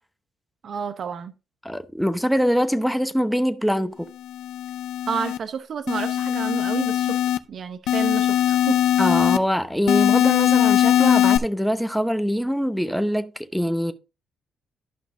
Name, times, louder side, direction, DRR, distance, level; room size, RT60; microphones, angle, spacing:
voice 1, 0.6-1.3 5.1-7.2 7.5-8.8, right 6 dB, 55° right, 0.7 m, -30 dB
voice 2, 1.6-4.1 9.0-13.9, equal, ahead, 0.9 m, -23 dB
sound 1, 4.3-5.4 5.9-7.4 7.9-9.4 9.9-11.4, left 11 dB, 85° left, 0.6 m, -20 dB
12.5 x 5.6 x 2.6 m
cardioid pair, 90°, 0 cm